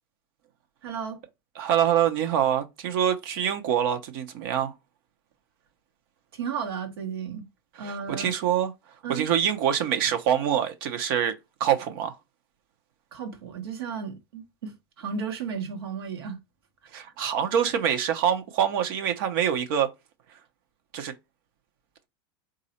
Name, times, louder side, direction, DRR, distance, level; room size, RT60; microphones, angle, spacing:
voice 1, 0.8-1.2 6.3-7.5 7.8-8.3 9.0-9.3 13.1-16.4, right 6 dB, 80° right, 1.2 m, -34 dB
voice 2, 1.6-4.7 7.8-8.7 9.1-11.3 11.6-12.2 16.9-19.9 20.9-21.1, right 9 dB, 65° right, 0.8 m, -25 dB
4.1 x 2.6 x 4.2 m
hypercardioid pair, 105°, 13 cm